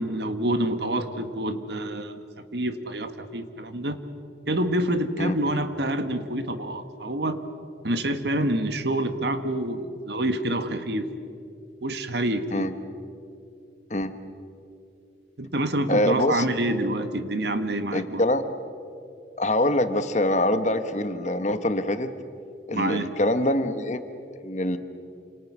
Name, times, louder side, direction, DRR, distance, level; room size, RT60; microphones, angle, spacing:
voice 1, 0.0-2.2 2.5-4.0 4.5-7.4 7.8-11.1 11.8-12.7 15.4-18.2 22.7-23.1, right 1 dB, 65° right, 9 dB, 1.5 m, -27 dB
voice 2, 15.9-16.4 17.9-18.4 19.4-22.1 22.7-24.0 24.4-24.8, left 1 dB, 40° left, 10 dB, 1.2 m, -24 dB
28.5 x 27.0 x 6.2 m, 2.5 s
head